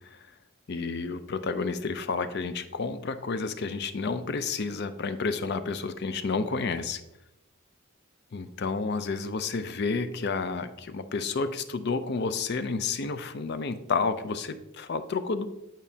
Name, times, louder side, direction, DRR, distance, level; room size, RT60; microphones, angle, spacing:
voice 1, 0.7-7.0 8.3-15.5, left 4 dB, 50° left, 11 dB, 0.4 m, -30 dB
9.1 x 5.0 x 2.7 m, 0.89 s
head